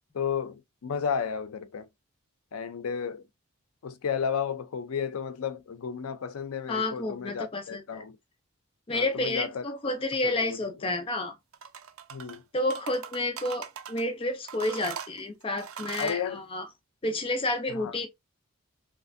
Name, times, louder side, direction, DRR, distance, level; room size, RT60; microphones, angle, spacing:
voice 1, 0.1-1.9 2.5-3.3 3.8-8.2 8.9-9.6 10.2-10.9 12.1-12.4 16.0-16.4 17.7-17.9, left 7 dB, 85° left, 0.5 m, -33 dB
voice 2, 6.7-8.0 8.9-11.3 12.5-16.7 17.0-18.1, left 2 dB, 25° left, 0.4 m, -30 dB
sound 1, 11.5-12.4 12.7-14.0 14.5-16.2, right 7 dB, 75° right, 0.4 m, -40 dB
3.0 x 2.5 x 2.5 m
head